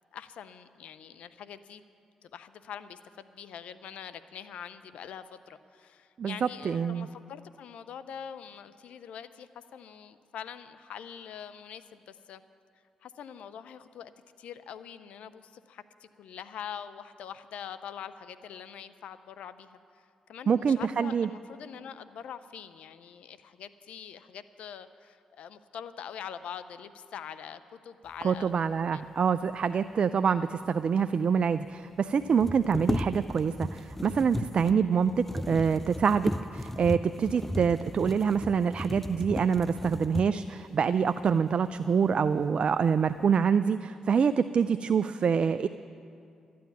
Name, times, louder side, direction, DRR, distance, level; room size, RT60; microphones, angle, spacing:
voice 1, 0.1-1.8 2.2-12.4 13.0-14.1 14.4-28.5 28.8-29.0, left 8 dB, 75° left, 13 dB, 0.6 m, -44 dB
voice 2, 6.2-7.1 20.5-21.3 28.2-45.7, right 6 dB, 55° right, 11 dB, 0.4 m, -26 dB
sound 1, 30.8-30.9 31.0-31.1 32.2-40.6 41.2-41.4 41.8-42.4 42.8-43.3, left 1 dB, 10° left, 0.5 m, -35 dB
12.5 x 9.4 x 9.3 m, 2.4 s
supercardioid pair, 50°, 2 cm